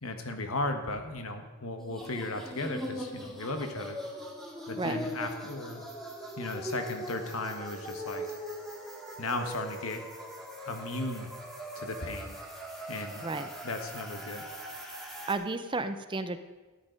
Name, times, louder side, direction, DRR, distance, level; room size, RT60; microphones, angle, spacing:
voice 1, 0.0-4.0 4.7-5.8 6.4-8.3 9.2-10.0 10.6-11.3 11.7-12.4 12.9-13.2 13.6-14.5, left 2 dB, 70° left, 6 dB, 1.4 m, -35 dB
sound 1, 1.8-15.3, equal, ahead, 1.9 m, -41 dB
voice 2, 13.2-13.5 15.3-16.4, right 3 dB, 20° right, 10 dB, 0.5 m, -32 dB
13.0 x 9.5 x 5.2 m, 1.2 s
head